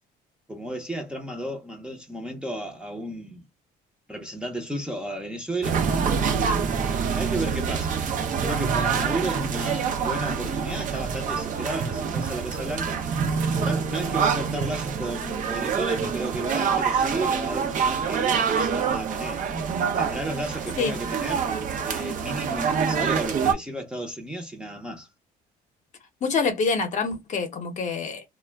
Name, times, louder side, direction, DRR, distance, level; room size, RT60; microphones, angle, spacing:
voice 1, 0.5-3.4 4.1-5.8 7.1-8.0 8.4-13.0 13.6-19.4 20.0-21.5 21.8-25.1, right 1 dB, 5° right, 0.6 m, -33 dB
sound 1, 5.6-23.5, right 6 dB, 50° right, 0.5 m, -26 dB
voice 2, 26.2-28.2, left 4 dB, 45° left, 0.7 m, -26 dB
2.2 x 2.1 x 3.3 m
cardioid pair, 110°, 17 cm